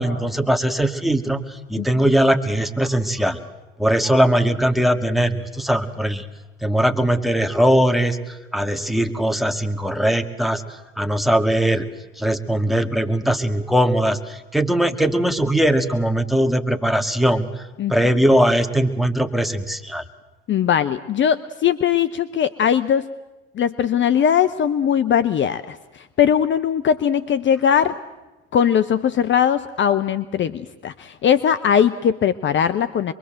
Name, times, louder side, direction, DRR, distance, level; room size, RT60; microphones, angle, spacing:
voice 1, 0.0-1.4 1.7-3.4 3.8-6.2 6.6-10.6 11.0-11.9 12.2-17.5 17.9-20.0, right 1 dB, ahead, 8 dB, 1.9 m, -20 dB
voice 2, 17.8-18.1 20.5-23.1 23.5-28.0 28.5-33.1, left 8 dB, 40° left, 13 dB, 0.9 m, -20 dB
25.0 x 22.5 x 7.7 m, 1.1 s
hypercardioid pair, 70°, 31 cm